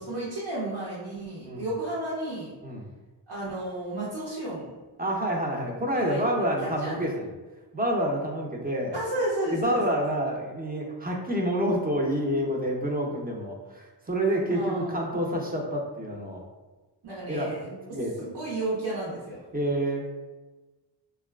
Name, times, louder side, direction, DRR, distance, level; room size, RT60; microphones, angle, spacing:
voice 1, 0.0-2.5 3.3-4.7 5.9-6.2 6.8-7.0 8.9-10.0 14.5-15.0 17.0-17.8 18.2-19.4, right 1 dB, 55° right, -7 dB, 0.9 m, -32 dB
voice 2, 5.0-7.3 7.7-9.0 9.5-16.4 17.3-17.6 17.9-18.1 19.5-20.1, equal, 20° right, 0 dB, 0.6 m, -28 dB
2.8 x 2.3 x 2.3 m, 1.2 s
cardioid pair, 40°, 48 cm